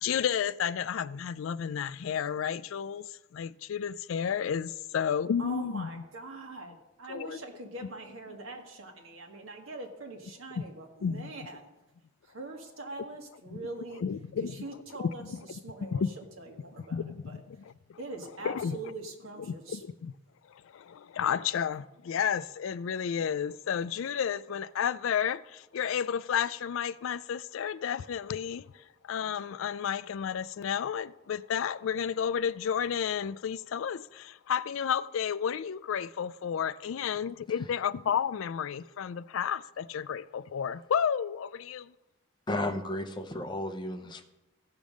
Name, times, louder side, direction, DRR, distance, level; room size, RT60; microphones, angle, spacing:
voice 1, 0.0-6.0 6.7-6.8 7.1-7.4 7.8-7.9 8.3-8.4 10.6-10.7 11.0-11.3 13.5-13.7 14.0-14.6 15.2-15.6 15.9-16.1 16.8-18.0 18.4-18.9 19.4-20.1 20.7-28.6 29.0-41.9, left 8 dB, 70° left, 0.3 m, -32 dB
voice 2, 5.4-11.7 12.3-14.0 14.6-15.2 15.6-17.0 17.3-17.4 18.0-19.8, right 2 dB, 75° right, 1.7 m, -43 dB
voice 3, 42.5-44.2, left 1 dB, 20° left, 0.7 m, -33 dB
15.5 x 5.3 x 6.3 m
head